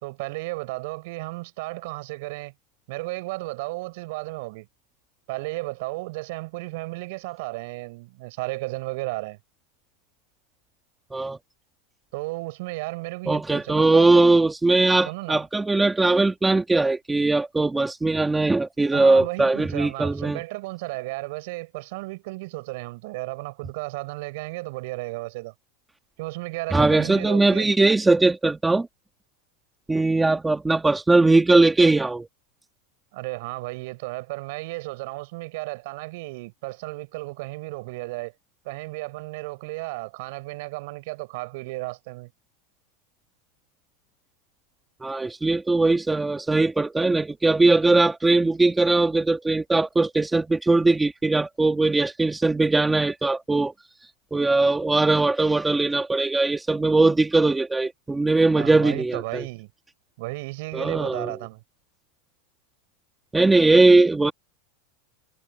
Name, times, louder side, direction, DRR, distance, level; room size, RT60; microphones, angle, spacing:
voice 1, 0.0-2.5 2.9-4.7 5.3-9.4 12.1-14.3 15.1-15.4 18.9-25.5 26.2-27.7 33.1-38.3 38.6-42.3 58.6-59.7 60.2-61.6, right 23 dB, 55° right, 5.2 m, -34 dB
voice 2, 13.3-20.4 26.7-28.9 29.9-32.3 45.0-53.7 54.3-59.4 60.7-61.3 63.3-64.3, right 3 dB, 5° right, 1.7 m, -20 dB
supercardioid pair, 160°, 0 cm